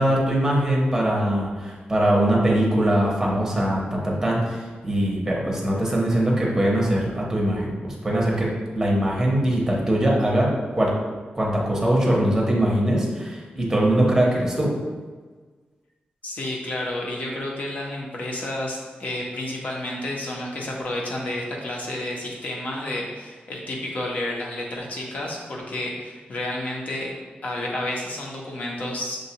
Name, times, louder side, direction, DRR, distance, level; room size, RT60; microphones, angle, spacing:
voice 1, 0.0-10.9 11.3-14.7, right 1 dB, 10° right, -3 dB, 0.8 m, -22 dB
voice 2, 16.2-27.1 27.4-29.2, left 1 dB, 50° left, -2 dB, 0.7 m, -30 dB
6.3 x 2.3 x 2.8 m, 1.4 s
wide cardioid pair, 175°, 3 cm